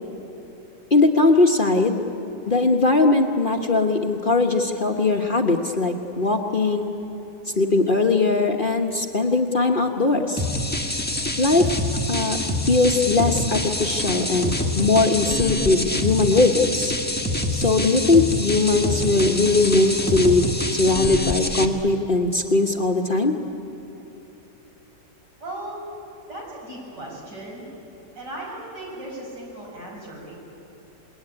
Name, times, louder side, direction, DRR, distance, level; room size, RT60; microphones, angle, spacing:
voice 1, 0.9-2.0 2.5-6.9 7.6-10.4 11.4-11.7 12.1-12.4 12.7-16.9 17.5-23.3, left 3 dB, 35° left, 2 dB, 1.2 m, -20 dB
sound 1, 10.4-21.7, left 1 dB, 5° left, 1.4 m, -26 dB
voice 2, 25.4-25.8 26.3-27.7 28.1-30.3, right 1 dB, 80° right, -3 dB, 7.5 m, -36 dB
27.5 x 20.5 x 9.9 m, 3.0 s
omnidirectional pair, 1.9 m